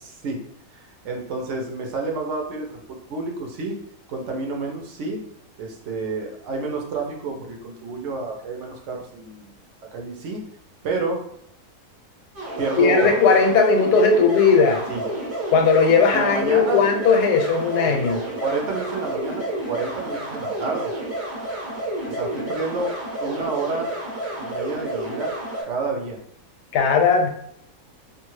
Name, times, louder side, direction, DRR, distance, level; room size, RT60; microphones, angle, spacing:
voice 1, 0.0-0.4 0.7-3.8 4.1-5.2 5.6-9.5 9.9-10.4 10.8-11.2 12.6-13.2 14.9-15.1 16.1-16.8 17.8-18.0 18.4-20.9 22.0-23.9 24.4-25.3 25.7-26.2, right 3 dB, 60° right, 1 dB, 0.8 m, -29 dB
sound 1, 12.3-25.6, right 1 dB, 40° right, 1.2 m, -30 dB
voice 2, 12.8-14.8 15.5-18.2 26.7-27.3, left 5 dB, 80° left, 3 dB, 1.1 m, -17 dB
2.6 x 2.3 x 3.1 m, 0.70 s
omnidirectional pair, 1.7 m